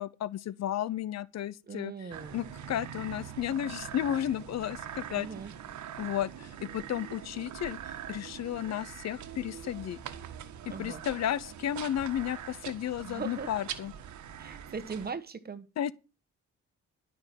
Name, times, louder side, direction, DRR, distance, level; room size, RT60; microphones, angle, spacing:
voice 1, 0.0-5.3 6.0-10.0 10.7-13.9 15.8-15.9, left 11 dB, 60° left, 0.7 m, -33 dB
voice 2, 1.7-2.4 5.1-5.5 10.7-11.0 13.0-13.5 14.4-15.7, right 5 dB, 30° right, 1.5 m, -39 dB
sound 1, 2.1-15.1, right 9 dB, 70° right, 1.5 m, -43 dB
12.0 x 6.2 x 7.4 m
cardioid pair, 90°, 30 cm